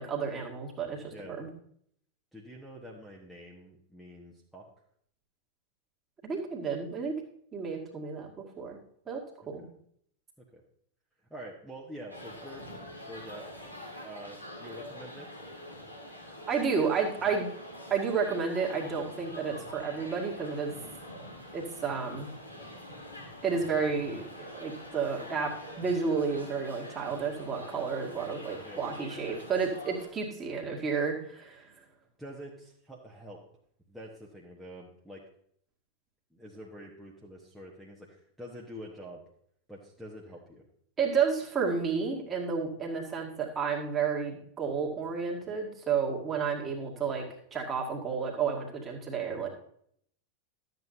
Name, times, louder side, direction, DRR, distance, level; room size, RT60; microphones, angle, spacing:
voice 1, 0.0-1.5 6.2-7.1 7.5-8.8 9.1-9.6 16.5-17.5 17.9-20.8 21.5-22.3 23.4-25.5 25.8-31.7 41.0-47.2 47.5-49.5, right 5 dB, 20° right, -1 dB, 2.1 m, -31 dB
voice 2, 2.3-4.7 9.6-9.7 10.5-10.6 11.3-12.7 13.1-13.4 14.0-15.3 20.8-21.0 28.6-28.9 32.2-33.4 33.9-35.2 36.3-39.2 39.7-40.6, equal, ahead, -5 dB, 1.5 m, -46 dB
sound 1, 12.1-30.1, left 1 dB, 90° left, 2.3 m, -45 dB
12.5 x 8.1 x 2.8 m, 0.65 s
figure-of-eight pair, 90°, 0 cm